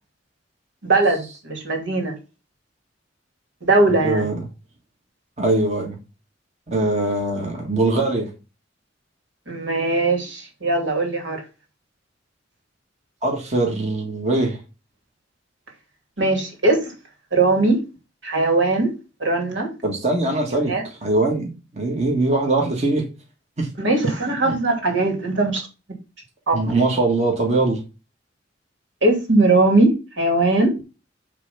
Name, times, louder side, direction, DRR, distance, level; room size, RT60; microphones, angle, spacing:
voice 1, 0.8-2.2 3.6-4.3 9.5-11.4 16.2-16.9 17.3-17.8 18.2-18.9 19.2-19.7 20.7-20.8 23.8-25.6 26.5-26.6 29.0-30.8, right 2 dB, 75° right, 2.8 m, -20 dB
voice 2, 4.0-4.4 5.4-6.0 6.7-8.3 13.2-14.6 19.8-20.7 21.0-23.1 23.6-23.7 24.4-24.5 26.5-27.8, right 2 dB, 35° right, 1.7 m, -21 dB
9.6 x 3.4 x 5.5 m
head